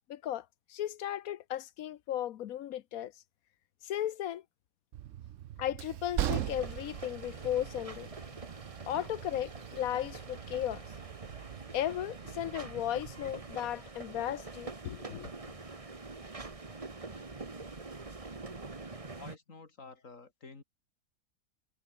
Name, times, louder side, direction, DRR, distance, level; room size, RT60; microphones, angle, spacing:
voice 1, 0.1-3.1 3.8-4.4 5.6-8.1 8.9-10.8 11.7-15.3, left 11 dB, 90° left, 1.2 m, -35 dB
Train, 4.9-13.5, right 12 dB, 70° right, 1.0 m, -41 dB
sound 1, 6.2-19.4, right 3 dB, 25° right, 1.5 m, -45 dB
voice 2, 19.1-20.6, left 4 dB, 70° left, 3.2 m, -50 dB
omnidirectional pair, 1.4 m